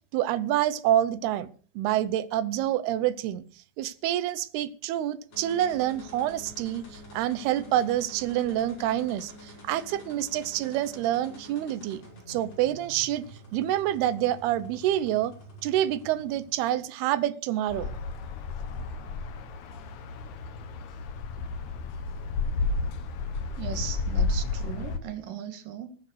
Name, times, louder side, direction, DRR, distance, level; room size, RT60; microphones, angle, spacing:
voice 1, 0.1-1.5 1.8-3.4 3.8-12.0 12.3-13.3 13.5-15.3 15.6-17.9, right 12 dB, 85° right, 2.9 m, -27 dB
sound 1, 5.3-17.0, equal, 40° left, 6.9 m, -48 dB
sound 2, 17.7-25.0, left 3 dB, 60° left, 2.4 m, -32 dB
voice 2, 23.6-26.0, right 9 dB, 65° right, 3.1 m, -38 dB
19.5 x 9.5 x 6.3 m
omnidirectional pair, 4.5 m